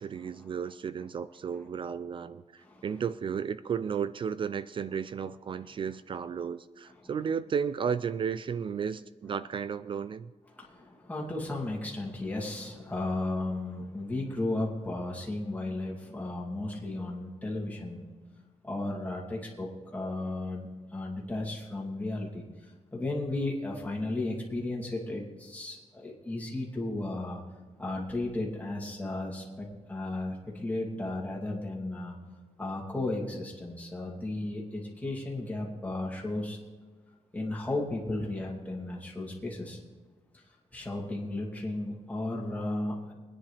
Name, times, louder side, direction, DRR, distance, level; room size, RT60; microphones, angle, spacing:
voice 1, 0.0-10.3, right 7 dB, 45° right, 14 dB, 0.4 m, -33 dB
voice 2, 10.5-18.1 18.6-27.4 27.8-32.2 32.6-36.6 37.3-39.8 40.3-40.4 40.7-43.1, left 2 dB, 10° left, -3 dB, 2.5 m, -34 dB
23.0 x 10.0 x 3.3 m, 1.3 s
wide cardioid pair, 150°, 12 cm